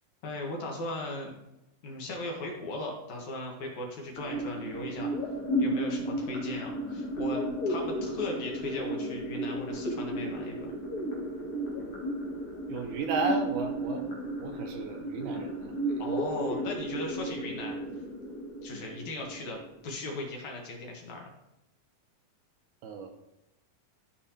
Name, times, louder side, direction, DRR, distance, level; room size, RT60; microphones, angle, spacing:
voice 1, 0.2-1.3 1.8-5.1 5.6-10.7 16.0-17.8 18.6-21.2, left 2 dB, 65° left, 0 dB, 2.4 m, -37 dB
sound 1, 4.1-20.1, right 1 dB, 45° left, 2.4 m, -34 dB
voice 2, 12.7-14.0 14.4-16.1 16.5-16.6 22.8-23.1, right 3 dB, 80° right, 4 dB, 2.1 m, -34 dB
13.0 x 4.8 x 2.8 m, 0.90 s
omnidirectional pair, 3.9 m